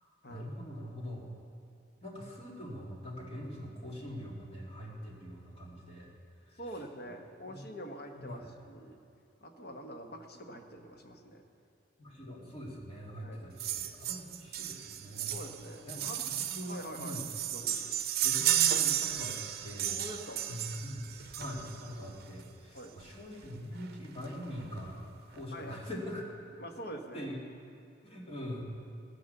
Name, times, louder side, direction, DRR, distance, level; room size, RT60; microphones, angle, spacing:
voice 1, 0.3-1.3 2.0-6.1 6.5-6.6 7.0-7.1 7.5-7.6 8.2-8.5 12.0-15.3 15.8-17.3 18.2-20.0 20.5-26.3 27.1-27.4 28.0-28.6, equal, 30° left, -3 dB, 2.5 m, -43 dB
voice 2, 6.6-9.0 9.4-11.4 13.2-13.4 15.3-16.2 16.6-17.2 17.5-18.0 19.9-20.4 22.7-22.9 25.5-25.8 26.6-27.3, equal, 55° left, 4 dB, 1.2 m, -45 dB
sound 1, 13.6-21.9 23.0-23.1 23.4-23.5 23.8-23.9 24.3-24.9 25.3-25.4, right 11 dB, 55° right, 0.7 m, -33 dB
14.5 x 9.9 x 6.8 m, 2.6 s
head